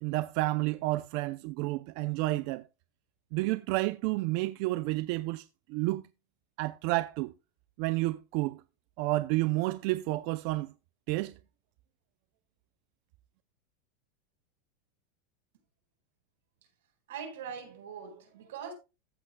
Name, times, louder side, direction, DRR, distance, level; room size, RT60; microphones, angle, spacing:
voice 1, 0.0-2.6 3.3-6.0 6.6-7.3 7.8-8.6 9.0-10.7 11.1-11.3, right 19 dB, 50° right, 0.4 m, -30 dB
voice 2, 17.1-18.7, right 7 dB, 85° right, 4.6 m, -42 dB
14.5 x 8.2 x 2.2 m
supercardioid pair, 160°, 0 cm